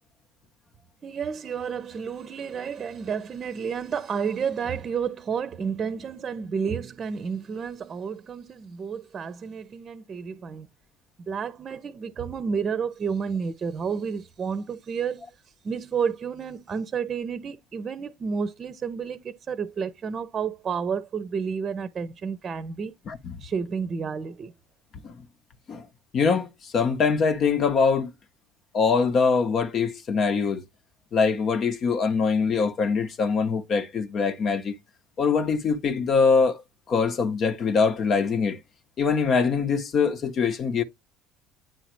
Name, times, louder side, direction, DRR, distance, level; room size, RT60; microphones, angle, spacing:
voice 1, 1.0-10.7 11.3-15.3 15.6-22.9 23.4-24.5, right 6 dB, 40° right, 0.7 m, -31 dB
voice 2, 23.1-23.4 25.0-25.2 25.7-25.9 26.1-28.1 28.7-30.6 31.1-34.7 35.2-36.6 36.9-38.6 39.0-40.8, left 5 dB, 45° left, 0.9 m, -23 dB
9.1 x 3.9 x 3.1 m
hypercardioid pair, 65°, 0 cm